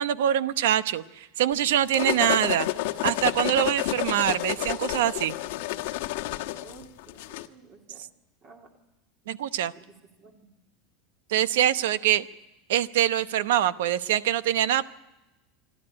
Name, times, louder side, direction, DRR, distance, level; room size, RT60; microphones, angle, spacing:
voice 1, 0.0-2.7 3.0-5.4 9.3-9.7 11.3-12.2 12.7-14.8, right 11 dB, 85° right, 14 dB, 0.9 m, -24 dB
sound 1, 1.6-7.5, left 16 dB, 75° left, 1.2 m, -30 dB
voice 2, 6.6-8.0 8.4-8.7 9.8-10.5, right 3 dB, 35° right, 2 dB, 2.8 m, -52 dB
26.0 x 12.5 x 9.8 m, 1.0 s
supercardioid pair, 150°, 0 cm